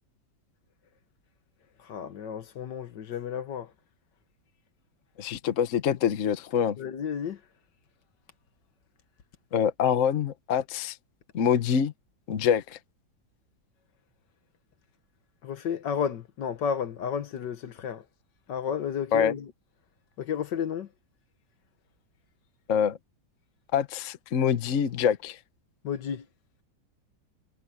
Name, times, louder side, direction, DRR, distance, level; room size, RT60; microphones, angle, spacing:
voice 1, 1.8-3.7 6.8-7.4 15.4-18.0 18.5-19.5 20.2-20.9 25.8-26.2, left 7 dB, 70° left, 1.7 m, -32 dB
voice 2, 5.2-6.8 9.5-11.0 11.3-11.9 12.3-12.8 19.1-19.3 22.7-23.0 23.7-25.4, left 8 dB, 50° left, 1.2 m, -25 dB
omnidirectional pair, 2.1 m